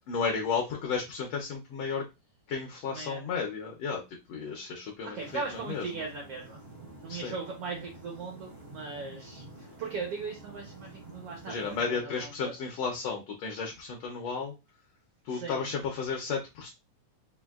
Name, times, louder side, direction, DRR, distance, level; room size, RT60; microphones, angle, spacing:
voice 1, 0.1-2.0 2.5-4.0 4.3-5.2 5.5-6.0 7.1-7.3 11.5-14.5 15.2-16.7, left 5 dB, 80° left, 1 dB, 1.4 m, -33 dB
voice 2, 2.9-3.3 5.0-6.6 7.0-12.6 15.3-15.7, right 4 dB, 75° right, 1 dB, 1.3 m, -39 dB
sound 1, 5.1-11.8, right 2 dB, 55° right, 0.6 m, -49 dB
6.0 x 2.5 x 2.3 m, 0.25 s
omnidirectional pair, 3.6 m